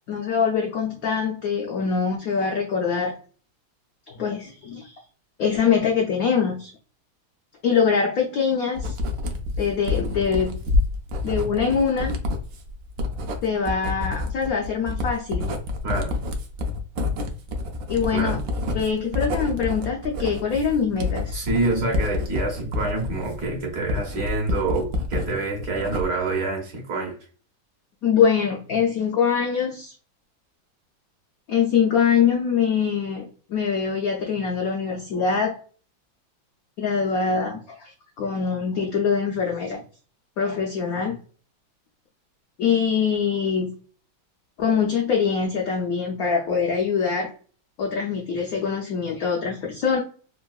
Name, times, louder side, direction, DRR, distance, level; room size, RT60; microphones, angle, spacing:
voice 1, 0.1-3.2 4.1-5.0 5.4-6.7 7.6-9.0 9.6-10.5 11.2-12.1 13.4-15.5 17.9-18.4 18.7-21.4 28.0-29.9 31.5-35.6 36.8-39.8 40.4-41.2 42.6-43.7 44.6-47.3 47.8-50.0, left 6 dB, 80° left, 0.8 m, -23 dB
Writing, 8.8-25.3 25.6-26.3, left 2 dB, 80° right, 0.8 m, -28 dB
voice 2, 15.8-16.2 18.1-18.4 21.3-27.2, right 3 dB, 60° right, 1.1 m, -26 dB
3.7 x 2.2 x 2.2 m
omnidirectional pair, 2.1 m